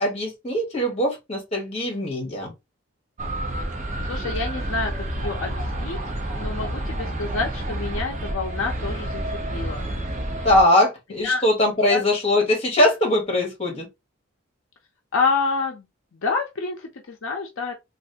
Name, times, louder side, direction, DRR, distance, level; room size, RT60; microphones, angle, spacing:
voice 1, 0.0-2.5 10.4-13.9, left 1 dB, 30° left, 1.2 m, -21 dB
sound 1, 3.2-10.6, right 1 dB, 35° right, 0.7 m, -29 dB
voice 2, 4.1-6.0 6.4-9.2 9.5-9.8 11.2-11.4 11.9-12.0 15.1-15.8 16.1-17.7, left 4 dB, 70° left, 0.6 m, -27 dB
3.2 x 2.5 x 2.7 m
head